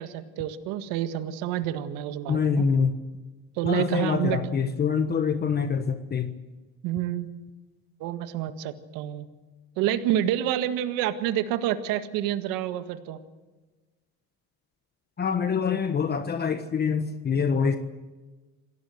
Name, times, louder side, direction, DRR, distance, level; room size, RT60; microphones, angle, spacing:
voice 1, 0.0-2.7 3.6-4.5 6.8-7.4 8.0-9.3 9.8-13.2, right 12 dB, 70° right, 9 dB, 1.8 m, -28 dB
voice 2, 2.3-3.0 3.6-6.3 15.2-17.8, left 6 dB, 30° left, 8 dB, 1.3 m, -25 dB
27.0 x 18.0 x 7.9 m, 1.2 s
cardioid pair, 120°, 35 cm